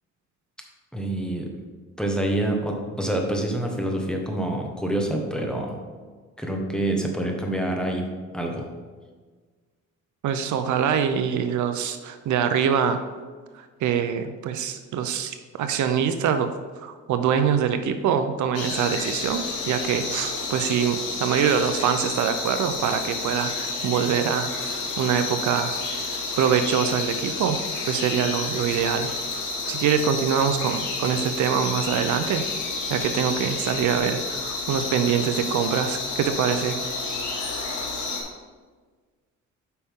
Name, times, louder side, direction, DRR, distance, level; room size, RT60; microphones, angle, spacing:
voice 1, 0.9-1.5 2.0-5.8 6.4-8.1 8.3-8.7, right 1 dB, 5° left, 1 dB, 1.3 m, -26 dB
voice 2, 10.2-13.0 13.8-16.5 16.8-25.7 26.4-27.6 27.9-29.1 29.7-32.4 32.9-36.8, right 8 dB, 75° right, 8 dB, 0.6 m, -24 dB
sound 1, 18.5-38.2, left 3 dB, 80° left, 1.6 m, -30 dB
8.3 x 5.6 x 3.7 m, 1.5 s
cardioid pair, 90°, 30 cm